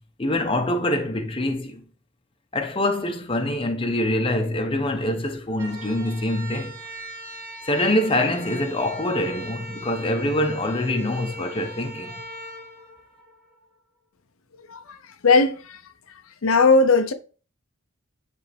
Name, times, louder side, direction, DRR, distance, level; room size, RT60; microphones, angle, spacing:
voice 1, 0.2-1.8 2.5-6.8 7.7-12.2, left 1 dB, 25° left, 0.9 m, -25 dB
sound 1, 5.5-13.6, equal, 15° right, 2.1 m, -39 dB
voice 2, 15.2-15.8 16.4-17.1, left 3 dB, 80° left, 0.7 m, -18 dB
10.5 x 3.5 x 3.4 m
head